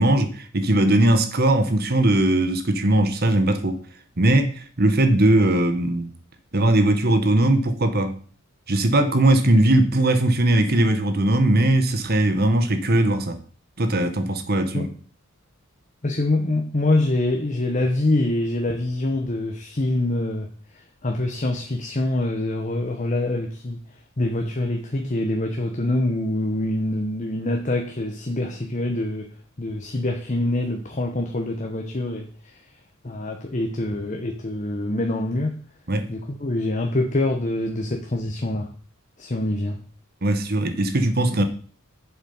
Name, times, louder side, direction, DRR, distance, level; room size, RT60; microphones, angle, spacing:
voice 1, 0.0-3.8 4.2-6.1 6.5-8.2 8.7-13.4 13.8-14.9 35.9-36.1 40.2-41.4, right 1 dB, 45° right, 1.2 m, -19 dB
voice 2, 16.0-23.8 24.2-29.3 29.6-32.6 33.0-35.6 36.1-38.7 39.2-39.8, left 2 dB, 35° left, 1.0 m, -25 dB
7.2 x 7.1 x 5.6 m
head